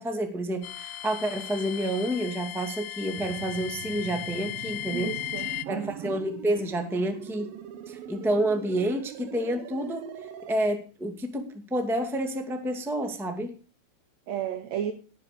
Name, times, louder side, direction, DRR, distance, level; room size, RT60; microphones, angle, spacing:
voice 1, 0.0-5.2 5.7-7.5 7.9-10.1 10.5-13.5, right 1 dB, ahead, 1.6 m, -29 dB
sound 1, 0.6-5.7, left 14 dB, 80° left, 2.8 m, -37 dB
sound 2, 3.1-10.5, right 10 dB, 80° right, 3.0 m, -41 dB
voice 2, 4.9-6.2 14.3-14.9, right 9 dB, 60° right, 2.5 m, -33 dB
18.0 x 7.5 x 6.8 m
omnidirectional pair, 4.1 m